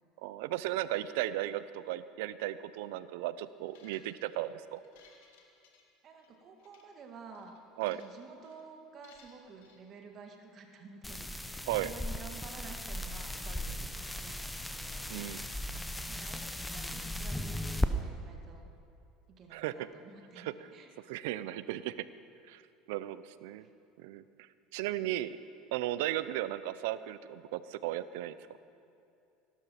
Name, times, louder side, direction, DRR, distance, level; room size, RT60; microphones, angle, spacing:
voice 1, 0.2-4.8 7.8-8.0 11.7-11.9 15.1-15.4 19.5-19.7 20.4-20.5 21.1-21.9 22.5-22.6 22.9-23.7 24.0-24.2 24.7-25.3 25.7-28.4, right 14 dB, 80° right, 15 dB, 0.6 m, -35 dB
sound 1, 3.7-4.3 4.8-6.3 6.6-6.8 7.3-8.2 8.4-8.6 9.0-9.8, left 6 dB, 90° left, 2.0 m, -62 dB
voice 2, 6.0-7.6 7.9-15.2 16.1-18.7 19.3-20.9 23.6-23.7, right 4 dB, 40° right, 3 dB, 1.8 m, -51 dB
sound 2, 11.0-17.9, left 1 dB, 5° left, 0.7 m, -37 dB
17.0 x 12.0 x 5.8 m, 2.7 s
supercardioid pair, 120°, 0 cm